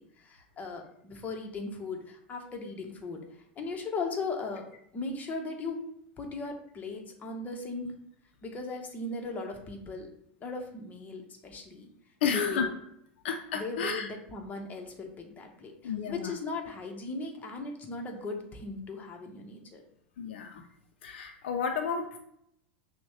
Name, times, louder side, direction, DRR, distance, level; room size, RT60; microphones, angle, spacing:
voice 1, 0.0-3.2 3.6-4.6 4.9-5.8 6.2-7.9 8.4-10.1 10.4-11.9 12.3-12.7 13.5-19.8, left 3 dB, 25° left, 2 dB, 0.9 m, -37 dB
voice 2, 12.2-12.7 13.2-14.1 15.8-16.3 20.2-20.6 21.0-22.2, left 6 dB, 70° left, 5 dB, 0.5 m, -31 dB
6.0 x 2.2 x 3.1 m, 0.72 s
hypercardioid pair, 95°, 6 cm